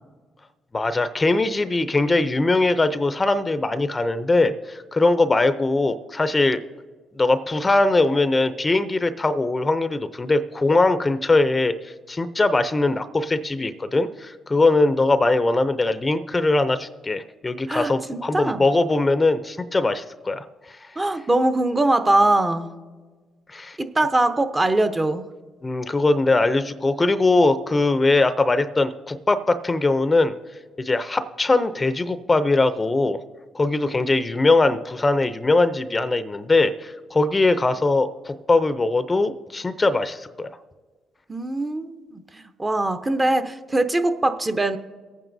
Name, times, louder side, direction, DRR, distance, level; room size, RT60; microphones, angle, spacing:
voice 1, 0.7-6.6 7.2-20.4 23.5-23.8 25.6-30.3 30.8-33.2 33.5-40.5, left 2 dB, 25° left, 12 dB, 0.5 m, -21 dB
voice 2, 17.7-18.6 21.0-22.7 23.8-25.3 41.3-44.8, right 2 dB, 25° right, 9 dB, 0.7 m, -22 dB
23.5 x 9.0 x 2.7 m, 1.4 s
supercardioid pair, 70°, 0 cm